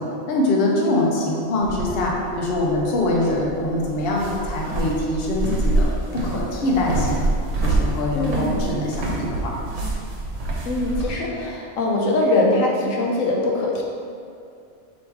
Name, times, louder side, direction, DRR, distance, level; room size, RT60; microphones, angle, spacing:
voice 1, 0.0-7.3 7.6-9.5, left 1 dB, 55° left, -2 dB, 0.8 m, -23 dB
sound 1, 1.6-11.1, right 2 dB, 75° right, 1.1 m, -26 dB
voice 2, 8.1-8.7 10.6-13.8, left 2 dB, 90° left, -2 dB, 1.1 m, -22 dB
3.4 x 3.1 x 4.5 m, 2.4 s
omnidirectional pair, 1.3 m